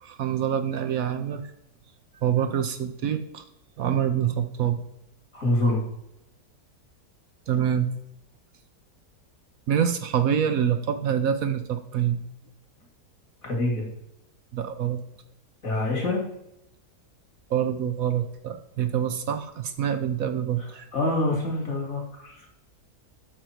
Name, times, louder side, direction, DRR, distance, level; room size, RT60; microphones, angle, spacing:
voice 1, 0.0-1.4 2.2-3.4 3.8-4.8 7.5-7.9 9.7-12.2 14.5-15.0 17.5-20.9, right 9 dB, 65° right, 8 dB, 1.0 m, -26 dB
voice 2, 5.3-5.8 13.4-13.9 15.6-16.2 20.9-22.5, left 1 dB, 55° left, 0 dB, 3.1 m, -25 dB
8.8 x 6.5 x 4.4 m, 0.83 s
omnidirectional pair, 1.7 m